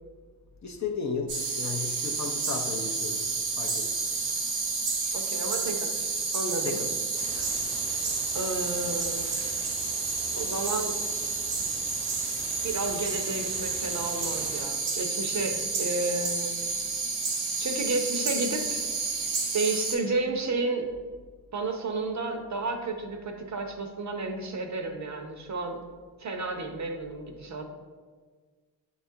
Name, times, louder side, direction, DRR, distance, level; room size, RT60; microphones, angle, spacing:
voice 1, 0.6-3.2 3.6-4.1 6.6-7.0, left 5 dB, 35° left, 2 dB, 0.6 m, -34 dB
sound 1, 1.3-20.0, right 4 dB, 85° right, 0.8 m, -30 dB
voice 2, 5.1-6.8 7.3-7.4 8.3-9.6 10.3-10.9 12.6-16.6 17.6-18.8 19.5-20.9 21.5-25.8 26.2-27.6, right 3 dB, 35° right, 4 dB, 0.6 m, -32 dB
sound 2, 7.1-14.6, left 1 dB, 10° left, 1.0 m, -44 dB
6.8 x 2.3 x 2.7 m, 1.5 s
hypercardioid pair, 40°, 50 cm